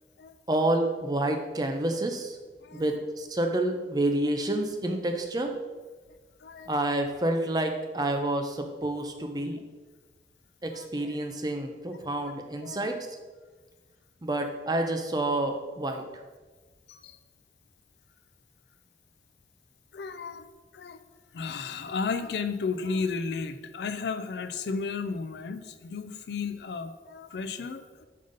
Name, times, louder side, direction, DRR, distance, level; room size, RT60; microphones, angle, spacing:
voice 1, 0.5-2.4 2.7-5.5 6.7-9.6 10.6-13.0 14.2-16.0, right 1 dB, 20° right, 5 dB, 0.5 m, -28 dB
voice 2, 2.6-3.0 5.4-5.5 6.4-6.7 10.7-11.2 12.2-12.3 12.6-13.0 14.8-14.9 16.9-17.2 19.9-20.5 20.7-21.0 21.3-28.0, left 4 dB, 70° left, 10 dB, 0.4 m, -34 dB
5.3 x 3.9 x 5.1 m, 1.3 s
head